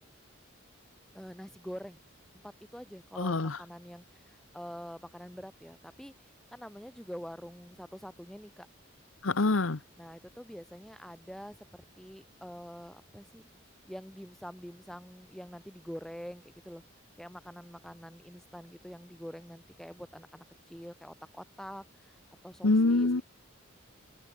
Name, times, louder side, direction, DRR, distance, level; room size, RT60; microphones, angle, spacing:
voice 1, 1.1-2.0 2.3-6.1 6.5-8.7 10.0-13.5 13.8-16.8 17.2-23.2, equal, ahead, 1.9 m, -46 dB
voice 2, 3.2-3.6 9.2-9.8 22.6-23.2, left 2 dB, 80° left, 1.1 m, -25 dB
open air
head